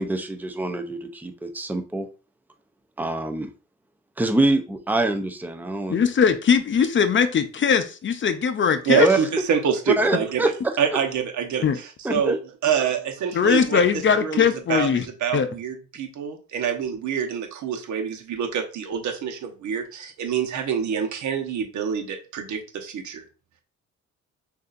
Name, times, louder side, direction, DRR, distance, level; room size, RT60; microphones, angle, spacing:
voice 1, 0.0-2.1 3.0-3.5 4.2-5.9 8.9-9.2 10.0-10.8 12.0-12.4, right 2 dB, 5° right, 6 dB, 0.6 m, -24 dB
voice 2, 5.9-9.1 11.6-11.8 13.3-15.1 15.3-15.5, left 6 dB, 40° left, 10 dB, 0.6 m, -20 dB
voice 3, 8.9-10.5 10.8-11.6 12.1-12.4 12.6-13.8 14.2-14.9 15.2-23.2, right 7 dB, 75° right, 4 dB, 1.0 m, -26 dB
6.5 x 2.7 x 2.5 m, 0.35 s
cardioid pair, 90°, 30 cm